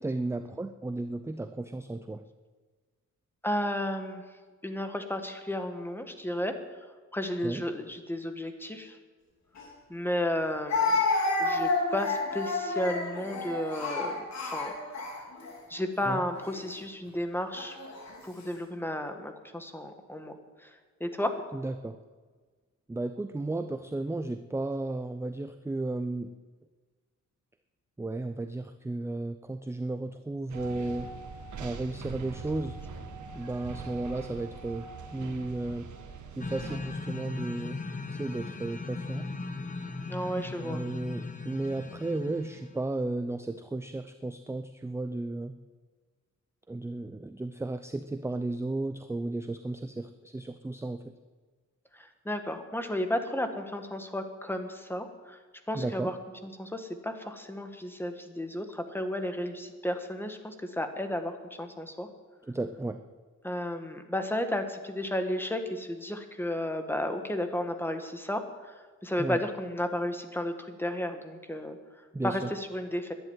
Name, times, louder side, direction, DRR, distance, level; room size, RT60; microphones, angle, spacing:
voice 1, 0.0-2.2 7.4-7.6 16.0-16.2 21.5-22.0 22.9-26.3 28.0-31.1 31.6-32.8 33.3-35.9 36.4-37.8 38.1-39.3 40.6-45.5 46.7-51.0 55.7-56.1 62.4-63.0 69.2-69.4 72.1-72.5, right 2 dB, 10° right, 9 dB, 0.5 m, -34 dB
voice 2, 3.4-4.2 4.6-6.5 7.1-9.0 9.9-11.0 11.4-14.7 15.7-17.8 18.2-20.4 21.0-21.4 40.1-40.8 52.2-55.4 55.7-56.1 56.6-61.3 61.6-62.1 63.4-68.4 69.0-71.8 72.2-73.1, left 1 dB, 5° left, 6 dB, 1.5 m, -33 dB
Speech, 9.6-9.7 10.7-15.6 16.3-16.6 17.6-18.1, left 3 dB, 60° left, 3.4 m, -30 dB
sound 1, 30.5-36.8, right 5 dB, 70° right, 1.6 m, -42 dB
sound 2, 36.4-42.8, left 3 dB, 25° left, 1.1 m, -38 dB
11.5 x 11.0 x 9.6 m, 1.4 s
wide cardioid pair, 140°, 30 cm